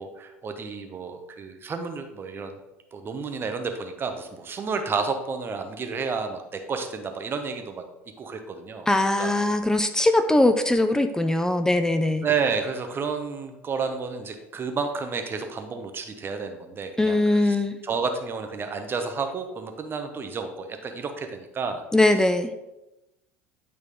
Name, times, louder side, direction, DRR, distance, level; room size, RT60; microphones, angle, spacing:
voice 1, 0.0-2.6 2.9-7.8 8.2-8.9 9.2-9.3 12.2-17.6 17.8-21.8, right 5 dB, 35° right, 6 dB, 1.1 m, -31 dB
voice 2, 8.9-12.2 17.0-17.8 21.9-22.5, left 2 dB, 10° left, 9 dB, 0.5 m, -21 dB
9.1 x 4.7 x 3.6 m, 0.96 s
hypercardioid pair, 70°, 7 cm